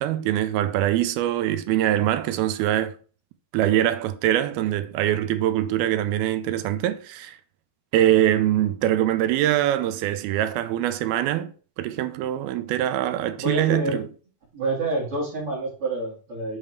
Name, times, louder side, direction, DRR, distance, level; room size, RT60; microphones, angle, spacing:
voice 1, 0.0-3.0 3.5-7.4 7.9-11.5 11.8-14.1, right 12 dB, 80° right, 2.4 m, -23 dB
voice 2, 13.4-14.0 14.5-16.6, right 2 dB, 40° right, 2.5 m, -27 dB
8.6 x 5.6 x 3.4 m
omnidirectional pair, 4.6 m